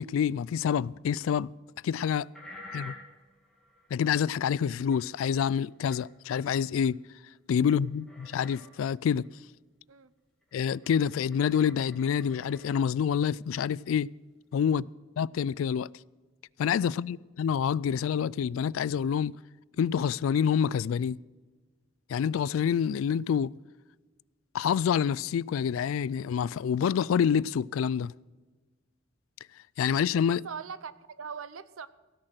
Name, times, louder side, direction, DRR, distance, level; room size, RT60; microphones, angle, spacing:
voice 1, 0.0-1.5 1.8-2.3 2.7-2.9 3.9-7.0 7.5-9.3 10.5-14.1 14.5-14.9 15.2-15.9 16.6-19.3 19.8-21.2 22.1-23.6 24.5-28.1 29.8-30.4, left 7 dB, 75° left, 0.3 m, -27 dB
sound 1, 2.3-5.0 5.3-5.5 5.8-6.0 6.3-6.4 6.8-6.9 7.3-7.4 7.6-8.8 9.2-9.3 10.4-13.1 13.7-13.8 14.5-14.6, left 1 dB, 5° left, 2.5 m, -50 dB
voice 2, 30.3-31.9, right 6 dB, 85° right, 0.7 m, -42 dB
17.0 x 6.5 x 7.7 m
head